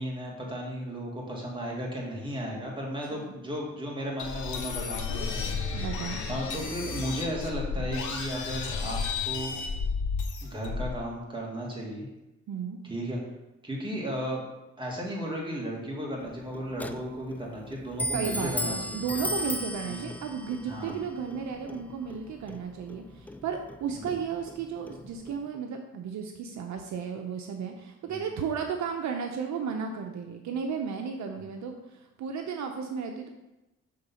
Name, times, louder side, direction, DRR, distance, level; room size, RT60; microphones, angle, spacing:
voice 1, 0.0-5.9 6.3-9.0 9.3-9.6 10.4-12.1 12.8-13.2 13.6-14.4 14.8-18.8 19.9-20.0 20.6-21.0 24.0-24.1 28.1-28.2, equal, 15° right, -3 dB, 2.2 m, -35 dB
sound 1, 4.2-11.0, left 5 dB, 75° left, 1.3 m, -32 dB
voice 2, 5.7-6.2 12.5-12.8 18.1-33.3, right 6 dB, 70° right, 4 dB, 0.7 m, -34 dB
Clock, 16.2-25.5, left 1 dB, 5° left, 0.3 m, -37 dB
6.7 x 3.8 x 5.6 m, 0.96 s
cardioid pair, 90°, 30 cm